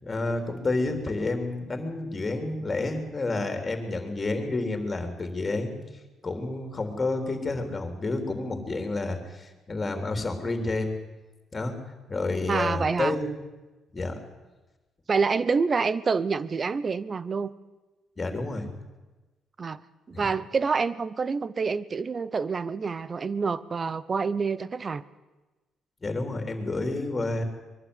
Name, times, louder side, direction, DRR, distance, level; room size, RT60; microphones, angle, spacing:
voice 1, 0.0-5.8 6.2-10.9 11.5-11.8 12.1-13.3 13.9-14.2 18.2-18.7 20.1-20.3 26.0-27.4, left 2 dB, 25° left, 6 dB, 3.6 m, -29 dB
voice 2, 12.5-13.2 15.1-17.5 19.6-19.8 20.1-25.0, right 5 dB, 40° right, 18 dB, 0.9 m, -27 dB
22.5 x 12.0 x 9.9 m, 1.1 s
cardioid pair, 90°, 0 cm